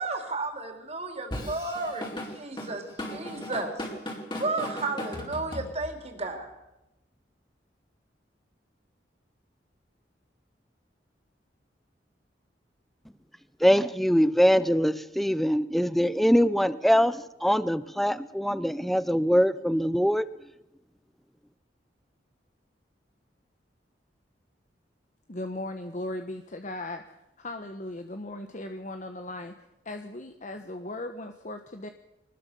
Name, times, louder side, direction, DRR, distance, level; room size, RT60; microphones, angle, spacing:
voice 1, 0.0-3.9 4.4-6.5, right 3 dB, 35° right, 4 dB, 4.2 m, -33 dB
Drum kit / Drum, 1.3-6.1, left 1 dB, 25° left, 4.5 m, -37 dB
voice 2, 13.6-20.2, equal, ahead, 15 dB, 0.8 m, -23 dB
voice 3, 25.3-27.0 27.4-29.5 29.8-31.9, left 1 dB, 45° left, 6 dB, 1.3 m, -37 dB
24.0 x 20.0 x 7.0 m, 0.91 s
head